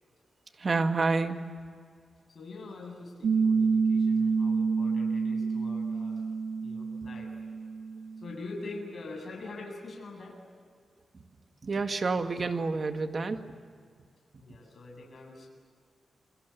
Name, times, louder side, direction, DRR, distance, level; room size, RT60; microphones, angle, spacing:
voice 1, 0.6-1.4 11.6-13.6, right 3 dB, 40° right, 7 dB, 1.8 m, -29 dB
voice 2, 2.3-6.2 6.6-7.3 8.2-10.4 14.4-15.5, left 3 dB, 50° left, 0 dB, 7.9 m, -44 dB
Piano, 3.2-8.4, right 5 dB, 80° right, 1.2 m, -28 dB
29.0 x 25.0 x 8.2 m, 2.1 s
wide cardioid pair, 105°, 0 cm